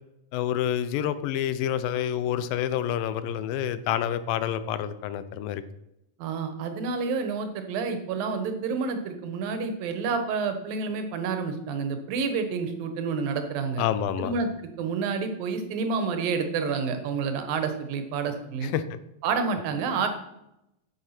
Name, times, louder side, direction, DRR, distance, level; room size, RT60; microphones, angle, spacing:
voice 1, 0.3-5.6 13.8-14.3 18.6-19.0, left 10 dB, 85° left, 13 dB, 2.5 m, -28 dB
voice 2, 6.2-13.8 14.2-14.5 14.8-18.7 19.2-20.1, right 5 dB, 85° right, 7 dB, 3.1 m, -29 dB
9.8 x 8.6 x 5.9 m, 0.85 s
omnidirectional pair, 4.0 m